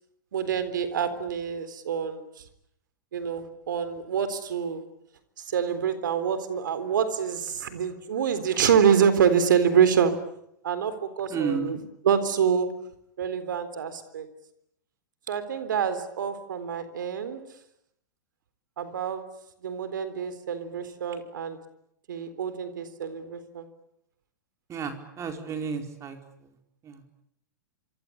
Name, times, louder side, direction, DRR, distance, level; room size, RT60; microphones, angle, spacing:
voice 1, 0.3-2.3 3.1-4.8 5.5-10.1 10.6-11.8 12.0-12.7 13.2-14.3 15.3-17.4 18.8-19.2 19.6-21.6 22.1-23.7, right 7 dB, 70° right, 12 dB, 3.8 m, -26 dB
voice 2, 11.3-11.8 24.7-26.2 26.8-27.0, right 6 dB, 30° right, 5 dB, 4.6 m, -32 dB
26.5 x 25.0 x 8.7 m, 0.76 s
hypercardioid pair, 105°, 11 cm